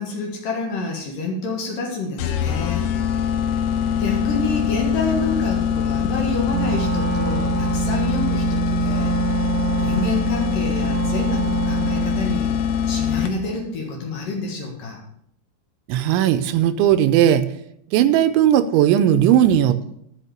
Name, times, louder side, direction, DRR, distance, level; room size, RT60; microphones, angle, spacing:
voice 1, 0.0-3.4 3.9-9.2 9.8-15.0, left 3 dB, 60° left, 0 dB, 2.7 m, -28 dB
sound 1, 2.2-13.6, left 8 dB, 85° left, 3.2 m, -23 dB
Wind instrument woodwind instrument, 6.5-12.4, right 10 dB, 50° right, 1.8 m, -26 dB
voice 2, 15.9-17.5 17.9-19.8, right 10 dB, 85° right, 12 dB, 3.0 m, -17 dB
12.0 x 5.7 x 6.8 m, 0.70 s
omnidirectional pair, 5.3 m